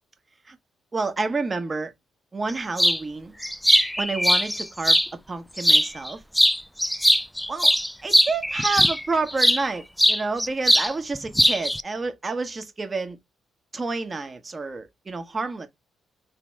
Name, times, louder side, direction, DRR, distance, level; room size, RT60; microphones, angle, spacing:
voice 1, 0.9-1.9 2.3-3.3 4.0-5.0 5.3-6.2 7.5-7.8 8.0-13.2 13.7-15.7, right 3 dB, 30° right, 1.1 m, -29 dB
sound 1, 2.8-3.0 3.4-5.1 5.6-6.1 6.3-9.6 10.0-10.9 11.1-11.8, equal, 5° left, 0.3 m, -20 dB
3.3 x 3.1 x 4.6 m
cardioid pair, 90°, 0 cm